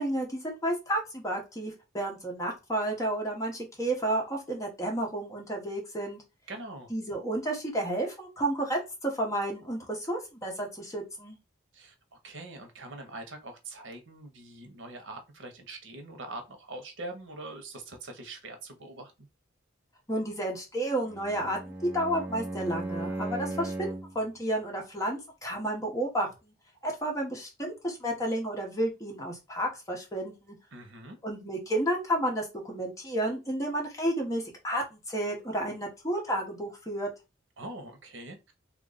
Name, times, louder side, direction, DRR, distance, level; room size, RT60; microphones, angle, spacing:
voice 1, 0.0-6.2 6.9-11.4 20.1-26.5 26.8-30.6 31.2-37.1, right 1 dB, 15° left, 1.1 m, -31 dB
voice 2, 6.5-6.9 11.7-11.9 12.2-19.3 30.7-31.2 37.6-38.4, right 2 dB, 85° right, 0.9 m, -43 dB
Bowed string instrument, 21.1-24.2, right 2 dB, 10° right, 0.4 m, -36 dB
3.1 x 2.5 x 3.9 m
head